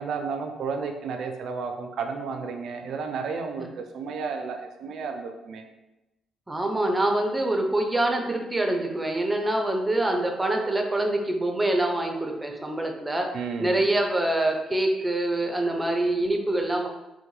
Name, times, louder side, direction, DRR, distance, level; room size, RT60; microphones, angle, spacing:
voice 1, 0.0-5.6 13.3-13.9, right 5 dB, 70° right, 5 dB, 0.4 m, -32 dB
voice 2, 6.5-13.3 13.6-16.9, right 1 dB, 15° right, 2 dB, 0.5 m, -25 dB
3.6 x 2.1 x 3.1 m, 0.98 s
cardioid pair, 90°, 0 cm